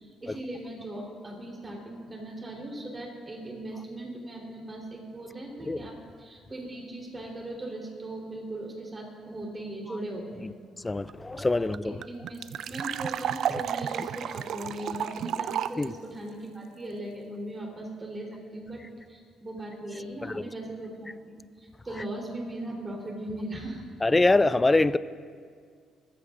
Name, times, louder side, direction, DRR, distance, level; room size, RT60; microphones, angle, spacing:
voice 1, 0.0-10.5 11.8-18.8 19.1-23.8, right 1 dB, 25° right, 3.5 m, -39 dB
voice 2, 10.8-11.9 15.8-15.9 20.3-20.4 24.0-25.0, left 2 dB, 15° left, 0.3 m, -23 dB
sound 1, 11.1-11.2 11.4-11.5 11.7-15.8, right 9 dB, 65° right, 0.3 m, -32 dB
21.5 x 14.5 x 2.5 m
cardioid pair, 105°, 0 cm